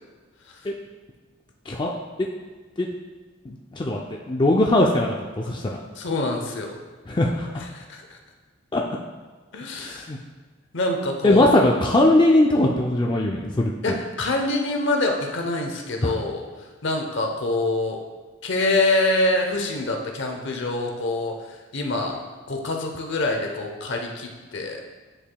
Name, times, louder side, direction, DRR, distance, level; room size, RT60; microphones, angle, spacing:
voice 1, 3.5-5.8 7.1-7.6 8.7-8.8 9.8-10.2 11.2-14.0 16.0-16.1, left 1 dB, 25° left, -1 dB, 0.4 m, -20 dB
voice 2, 6.0-6.8 7.7-8.2 9.5-10.1 10.7-11.8 13.8-16.5 16.8-18.0 18.4-24.8, left 2 dB, 60° left, 2 dB, 0.8 m, -25 dB
9.9 x 4.8 x 2.2 m, 1.4 s
head